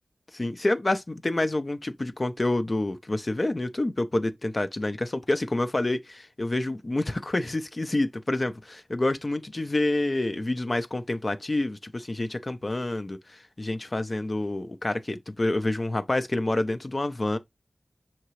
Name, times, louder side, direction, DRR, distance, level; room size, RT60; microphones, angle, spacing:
voice 1, 0.3-17.4, left 2 dB, 40° left, 0.4 m, -28 dB
5.7 x 2.8 x 3.0 m
wide cardioid pair, 60°, 0 cm